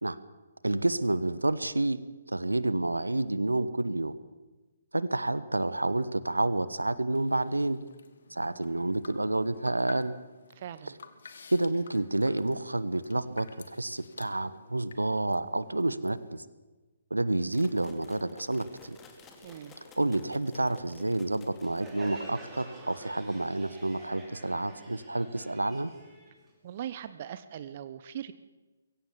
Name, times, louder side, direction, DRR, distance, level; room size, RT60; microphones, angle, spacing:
voice 1, 0.6-2.0 2.3-4.1 4.9-7.8 8.3-10.1 11.5-16.4 17.1-19.0 20.0-25.9, right 2 dB, 80° right, 16 dB, 1.2 m, -29 dB
sound 1, 7.1-16.4, left 5 dB, 55° left, 1.9 m, -52 dB
voice 2, 10.5-11.0 19.4-19.7 26.6-28.3, right 10 dB, 35° right, 13 dB, 0.9 m, -40 dB
sound 2, 17.5-22.4, left 3 dB, 15° left, 2.7 m, -53 dB
Crowd, 21.6-27.1, right 2 dB, 10° right, 5.5 m, -49 dB
22.5 x 17.0 x 7.3 m, 1.2 s
figure-of-eight pair, 135°, 0 cm